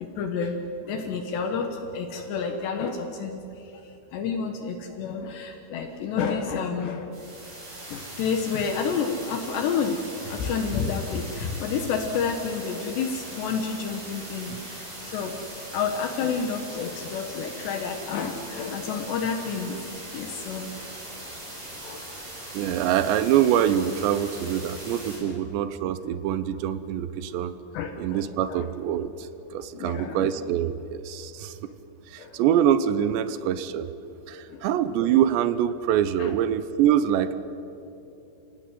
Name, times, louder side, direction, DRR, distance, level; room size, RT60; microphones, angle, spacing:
voice 1, 0.0-7.1 7.9-10.0 10.2-15.4 15.7-19.8 20.1-20.7 21.8-22.0 25.2-25.3 27.7-28.2 28.5-28.6 29.7-30.2 32.2-32.4 34.5-34.6 36.2-36.3, left 5 dB, 70° left, 4 dB, 3.3 m, -30 dB
sound 1, 7.1-25.2, right 1 dB, 40° right, 8.6 m, -40 dB
voice 2, 22.5-27.6 28.0-31.6 32.1-33.9 34.3-37.4, right 10 dB, 75° right, 13 dB, 2.9 m, -24 dB
28.5 x 17.0 x 9.4 m, 2.9 s
omnidirectional pair, 5.5 m